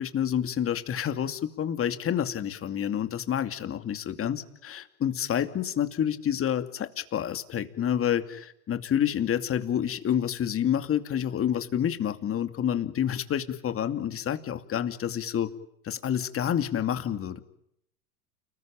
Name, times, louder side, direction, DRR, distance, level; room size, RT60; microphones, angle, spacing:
voice 1, 0.0-15.5 15.8-17.4, left 9 dB, 30° left, 9 dB, 2.6 m, -28 dB
29.5 x 20.5 x 9.0 m, 0.76 s
hypercardioid pair, 105°, 45 cm